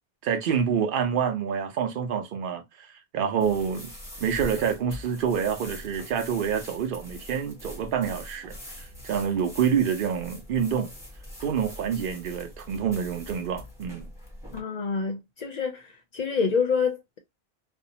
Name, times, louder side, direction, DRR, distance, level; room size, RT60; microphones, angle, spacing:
voice 1, 0.2-10.9 11.4-14.1, right 7 dB, 60° right, 0.8 m, -27 dB
sound 1, 3.4-14.6, left 1 dB, 5° right, 0.9 m, -43 dB
voice 2, 14.5-17.2, left 5 dB, 55° left, 0.5 m, -27 dB
2.6 x 2.1 x 2.7 m
omnidirectional pair, 1.1 m